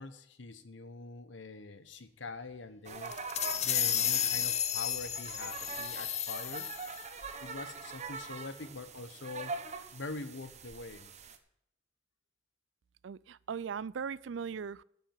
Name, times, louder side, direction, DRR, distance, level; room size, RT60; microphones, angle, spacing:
voice 1, 0.0-3.1 3.6-6.7 7.4-9.6 9.9-11.1, left 3 dB, 85° left, 1.1 m, -44 dB
sound 1, 2.8-11.4, right 4 dB, 40° right, 1.2 m, -44 dB
sound 2, 3.1-7.1, left 9 dB, 35° left, 0.7 m, -32 dB
voice 2, 13.0-14.8, right 6 dB, 80° right, 0.4 m, -38 dB
11.5 x 7.4 x 7.6 m
head